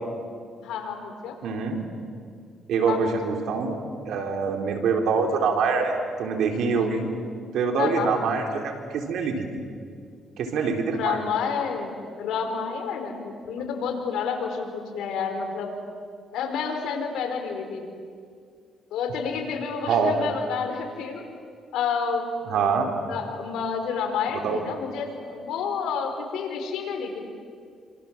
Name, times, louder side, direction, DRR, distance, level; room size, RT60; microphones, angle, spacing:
voice 1, 0.6-1.3 2.9-3.1 6.9-7.1 7.8-8.1 10.9-15.7 16.3-17.9 18.9-21.2 21.7-22.2 23.1-27.2, left 6 dB, 85° left, 4 dB, 4.6 m, -29 dB
voice 2, 1.4-1.8 2.7-7.0 7.5-9.5 10.4-11.2 19.9-20.1 22.5-22.9 24.3-24.6, right 5 dB, 75° right, 3 dB, 4.1 m, -25 dB
28.0 x 26.5 x 7.6 m, 2.2 s
cardioid pair, 90°, 0 cm